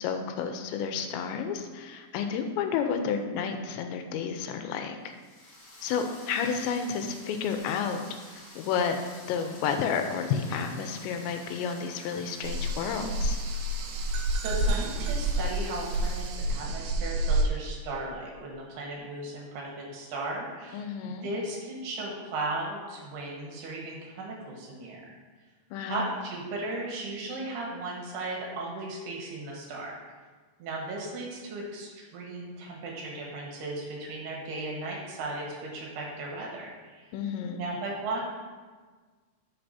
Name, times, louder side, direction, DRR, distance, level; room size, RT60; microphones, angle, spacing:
voice 1, 0.0-5.0 5.8-8.0 8.6-9.0 9.3-13.4 20.7-21.3 25.7-26.0 37.1-37.6, left 6 dB, 85° left, 6 dB, 2.9 m, -31 dB
sound 1, 5.1-16.8, left 1 dB, 40° left, 2.5 m, -49 dB
sound 2, 12.4-17.5, right 1 dB, 85° right, 3.0 m, -29 dB
voice 2, 14.3-20.9 21.2-25.0 25.9-30.0 30.6-37.1 37.5-38.2, right 2 dB, 70° right, -2 dB, 3.3 m, -36 dB
11.0 x 6.5 x 2.7 m, 1.4 s
omnidirectional pair, 5.1 m